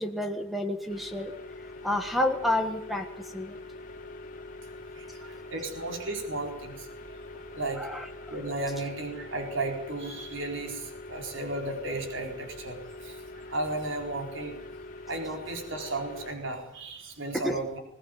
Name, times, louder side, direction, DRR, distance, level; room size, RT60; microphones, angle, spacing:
voice 1, 0.0-1.3 1.8-3.6 7.8-8.4 17.3-17.6, left 1 dB, ahead, 6 dB, 1.5 m, -30 dB
sound 1, 0.9-16.3, left 2 dB, 40° left, 3.2 m, -44 dB
voice 2, 4.9-6.9 7.3-7.8 8.3-14.6 15.1-17.8, right 2 dB, 65° right, 3 dB, 4.4 m, -34 dB
21.5 x 18.0 x 9.3 m, 0.78 s
head